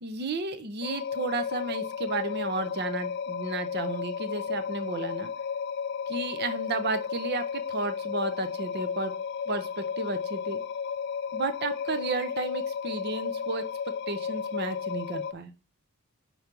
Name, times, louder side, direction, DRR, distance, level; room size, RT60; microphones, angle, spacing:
voice 1, 0.0-5.3 6.1-9.1 9.5-10.6 11.3-13.6 14.1-15.5, right 3 dB, 50° right, 10 dB, 0.7 m, -33 dB
sound 1, 0.8-15.3, left 6 dB, 50° left, 0.3 m, -33 dB
4.5 x 4.3 x 5.2 m, 0.33 s
head